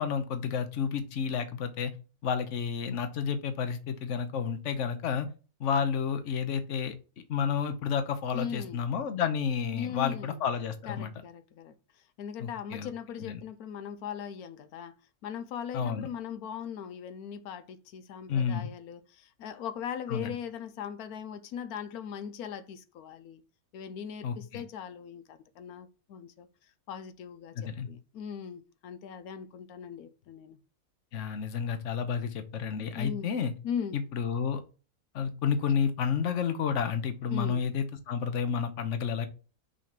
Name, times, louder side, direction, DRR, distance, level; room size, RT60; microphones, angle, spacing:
voice 1, 0.0-1.9 2.2-5.3 5.6-6.9 7.3-11.1 12.4-12.9 13.2-13.4 15.7-16.1 18.3-18.7 20.1-20.4 24.2-24.6 27.5-27.9 31.1-33.5 33.9-34.6 35.1-39.3, left 7 dB, 60° left, 1.2 m, -30 dB
voice 2, 8.3-8.8 9.7-10.4 10.9-15.0 15.2-23.4 23.7-30.6 32.8-33.3 33.6-34.0 37.3-37.6, left 8 dB, 90° left, 1.2 m, -39 dB
6.0 x 4.1 x 5.9 m
omnidirectional pair, 1.5 m